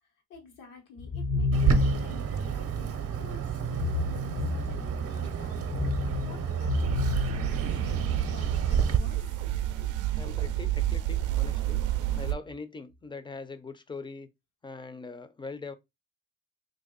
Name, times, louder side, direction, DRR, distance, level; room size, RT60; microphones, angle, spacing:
voice 1, 0.0-5.7 6.2-9.2, left 4 dB, 90° left, 1.4 m, -49 dB
sound 1, 1.0-2.3 3.6-5.1 5.6-8.1, left 4 dB, 55° left, 0.8 m, -30 dB
Bird, 1.5-9.0, right 8 dB, 50° right, 0.7 m, -30 dB
sound 2, 6.8-12.3, right 12 dB, 90° right, 0.5 m, -30 dB
voice 2, 10.1-11.8 12.2-14.3 14.6-15.7, left 4 dB, 15° left, 0.5 m, -42 dB
3.0 x 2.7 x 3.8 m
cardioid pair, 90°, 30 cm